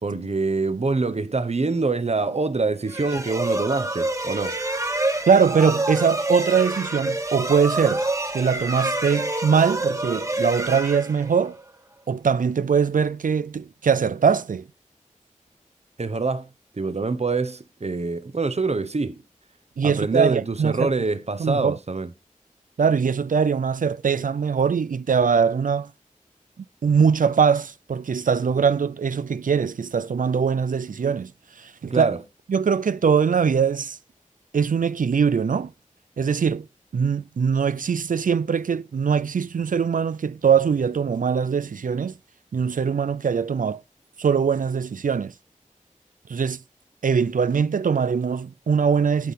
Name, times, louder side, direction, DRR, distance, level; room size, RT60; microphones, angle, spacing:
voice 1, 0.0-4.6 16.0-16.5 16.7-19.2 19.8-22.1 31.9-32.2, right 3 dB, 50° right, 1.0 m, -25 dB
sound 1, 2.9-11.6, right 2 dB, 25° right, 1.3 m, -27 dB
voice 2, 5.3-8.0 8.3-11.5 12.1-14.6 19.8-20.9 21.4-21.8 22.8-25.9 26.8-31.3 31.6-32.1 32.5-34.0 34.5-35.7 36.2-36.7 36.9-42.1 42.5-43.8 44.2-45.3 46.3-46.6 47.0-49.3, right 6 dB, 80° right, 0.5 m, -22 dB
12.0 x 5.7 x 4.2 m
wide cardioid pair, 55°, 14 cm